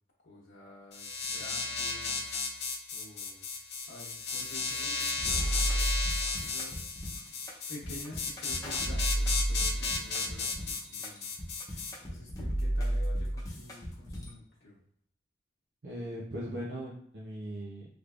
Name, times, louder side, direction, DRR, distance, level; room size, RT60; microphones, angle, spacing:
voice 1, 0.2-2.2 2.9-3.6 3.9-6.1 6.4-7.0 7.7-11.4 12.0-14.8, left 1 dB, 85° left, -5 dB, 0.8 m, -49 dB
sound 1, 0.9-11.9, left 4 dB, 65° left, 0.6 m, -34 dB
sound 2, 5.2-14.3, right 1 dB, 20° left, 0.7 m, -33 dB
voice 2, 15.8-17.9, equal, 75° right, -5 dB, 0.6 m, -39 dB
3.3 x 3.2 x 2.4 m, 0.67 s
head